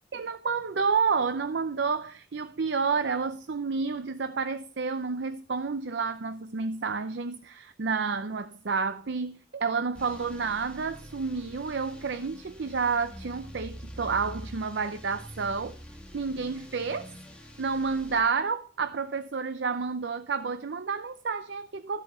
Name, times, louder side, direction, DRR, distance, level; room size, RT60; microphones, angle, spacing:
voice 1, 0.1-15.8 16.1-17.1 17.6-22.0, right 5 dB, 90° right, 0.6 m, -30 dB
sound 1, 9.9-18.2, equal, 5° left, 1.8 m, -45 dB
13.0 x 7.6 x 4.4 m
head